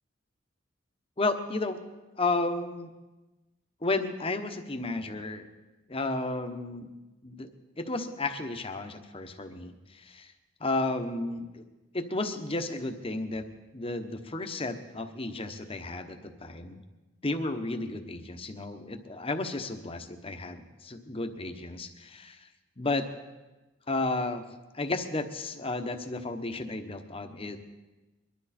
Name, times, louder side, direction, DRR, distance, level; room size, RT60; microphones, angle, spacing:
voice 1, 1.2-1.8 2.2-2.9 3.8-5.4 5.9-6.9 7.2-7.5 7.8-10.3 10.6-11.6 11.9-13.5 13.7-16.8 17.2-22.5 22.8-23.1 23.9-24.4 24.7-27.6, left 2 dB, 30° left, 7 dB, 1.1 m, -33 dB
22.0 x 12.5 x 4.3 m, 1.1 s
head